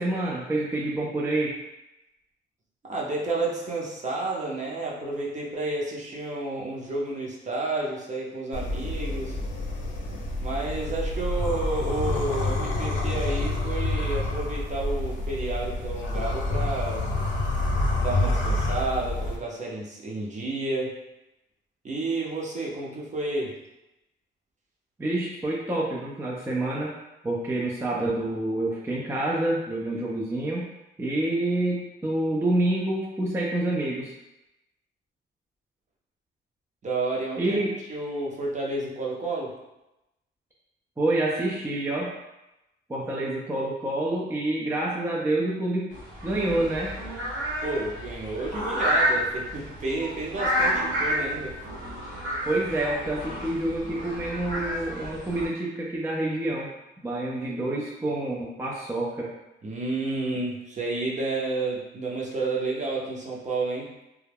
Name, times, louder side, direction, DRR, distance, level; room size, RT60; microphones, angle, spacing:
voice 1, 0.0-1.5 25.0-26.9 27.2-30.7 31.0-34.1 37.4-37.8 41.0-42.1 42.9-45.9 46.2-46.9 52.5-56.7 57.0-59.3, right 1 dB, 10° right, -4 dB, 0.4 m, -27 dB
voice 2, 2.9-9.4 10.4-17.1 18.0-20.9 21.8-23.5 36.8-37.6 37.9-39.5 47.6-51.5 59.6-63.9, right 2 dB, 35° right, -3 dB, 0.7 m, -30 dB
sound 1, 8.5-19.4, left 2 dB, 75° left, 0.6 m, -28 dB
sound 2, 45.9-55.5, equal, 70° right, 1.0 m, -30 dB
2.3 x 2.1 x 3.3 m, 0.95 s
cardioid pair, 90°, 20 cm